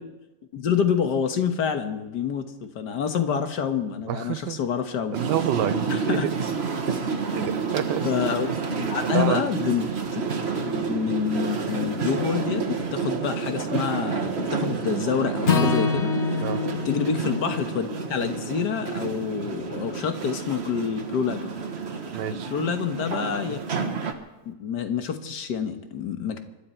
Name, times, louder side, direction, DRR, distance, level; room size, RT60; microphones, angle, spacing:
voice 1, 0.5-5.2 5.9-6.3 8.0-8.5 8.8-10.2 10.7-16.2 16.9-21.5 22.5-23.6 24.5-26.4, left 7 dB, 75° left, 7 dB, 1.9 m, -27 dB
voice 2, 4.1-4.6 5.1-6.3 7.3-8.0 9.1-9.4 16.4-16.6 22.1-22.5, right 11 dB, 80° right, 14 dB, 1.3 m, -27 dB
sound 1, 5.1-24.1, right 5 dB, 40° right, 1.3 m, -29 dB
Acoustic guitar / Strum, 15.4-19.7, left 5 dB, 45° left, 1.4 m, -28 dB
25.5 x 12.5 x 4.4 m, 1.0 s
omnidirectional pair, 1.9 m